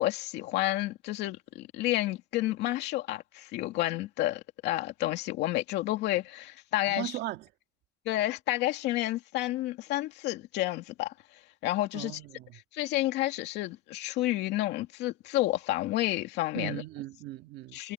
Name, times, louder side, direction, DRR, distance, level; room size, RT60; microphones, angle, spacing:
voice 1, 0.0-7.1 8.1-11.1 11.6-12.1 12.7-16.8 17.7-17.9, left 16 dB, 85° left, 2.5 m, -30 dB
voice 2, 6.9-7.5 11.9-12.6 16.5-17.8, right 16 dB, 85° right, 2.2 m, -38 dB
cardioid pair, 110°, 17 cm